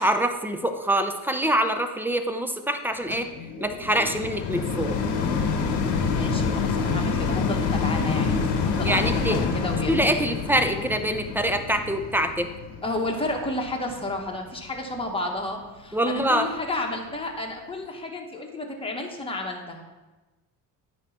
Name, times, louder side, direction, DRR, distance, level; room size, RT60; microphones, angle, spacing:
voice 1, 0.0-3.3 3.6-5.0 8.8-9.5 9.9-12.5 15.9-16.5, right 1 dB, 5° right, 7 dB, 0.6 m, -25 dB
sound 1, 3.1-14.4 15.0-15.1, left 5 dB, 75° left, 1.1 m, -27 dB
voice 2, 6.1-9.9 10.2-10.3 12.8-19.8, left 2 dB, 15° left, 0 dB, 1.3 m, -31 dB
9.3 x 3.1 x 5.7 m, 1.2 s
cardioid pair, 85°, 41 cm